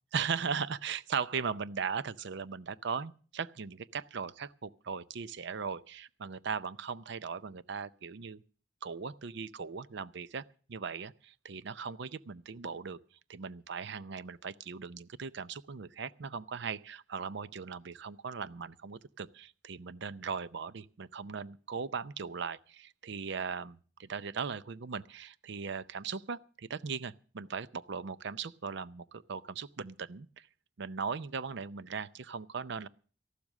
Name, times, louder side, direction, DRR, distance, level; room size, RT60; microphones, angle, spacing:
voice 1, 0.1-8.4 8.8-13.0 13.3-30.5 30.8-32.9, right 6 dB, 60° right, 0.6 m, -38 dB
13.5 x 12.0 x 6.3 m
head